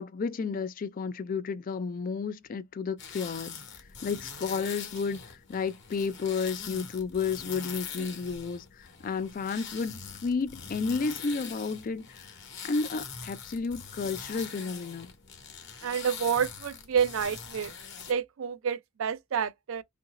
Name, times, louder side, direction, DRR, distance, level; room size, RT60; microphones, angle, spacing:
voice 1, 0.0-3.6 4.0-12.3 12.6-15.1, left 5 dB, 40° left, 0.3 m, -32 dB
sound 1, 3.0-18.1, left 6 dB, 55° left, 0.9 m, -43 dB
voice 2, 15.8-17.7 18.1-19.8, right 7 dB, 70° right, 0.4 m, -29 dB
2.7 x 2.6 x 3.9 m
head